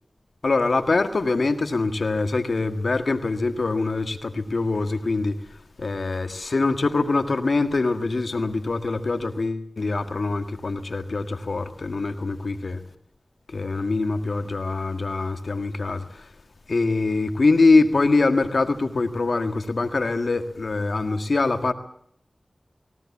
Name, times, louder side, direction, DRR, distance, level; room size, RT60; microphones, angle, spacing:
voice 1, 0.4-5.4 5.8-12.8 13.5-16.0 16.7-21.7, left 3 dB, 80° left, 1.7 m, -23 dB
20.5 x 17.0 x 8.5 m
wide cardioid pair, 50°, 0 cm